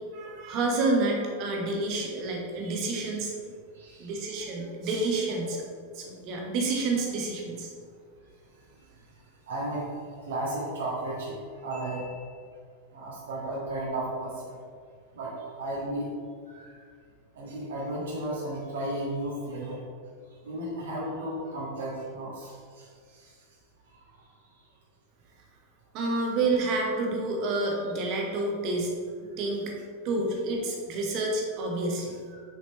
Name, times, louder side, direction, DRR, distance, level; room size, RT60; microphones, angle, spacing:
voice 1, 0.1-3.3 4.0-5.6 5.9-7.7 25.9-28.9 29.4-29.7 30.0-32.1, right 2 dB, 40° right, 0 dB, 1.4 m, -29 dB
voice 2, 3.7-4.2 8.5-12.5 12.9-14.6 15.1-16.1 16.5-16.9 17.3-19.8 20.3-23.4 23.9-24.3 32.3-32.4, right 1 dB, 60° right, -6 dB, 1.6 m, -35 dB
6.6 x 5.1 x 4.2 m, 2.1 s
figure-of-eight pair, 90°, 0 cm